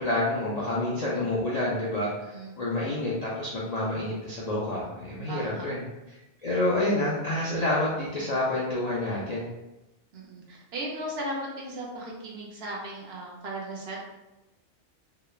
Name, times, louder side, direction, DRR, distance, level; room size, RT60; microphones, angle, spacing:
voice 1, 0.0-5.8 6.4-9.5, left 1 dB, 60° left, -7 dB, 0.4 m, -28 dB
voice 2, 5.3-5.7 10.1-14.0, right 1 dB, 70° right, -3 dB, 0.9 m, -36 dB
2.9 x 2.1 x 2.3 m, 0.98 s
omnidirectional pair, 1.2 m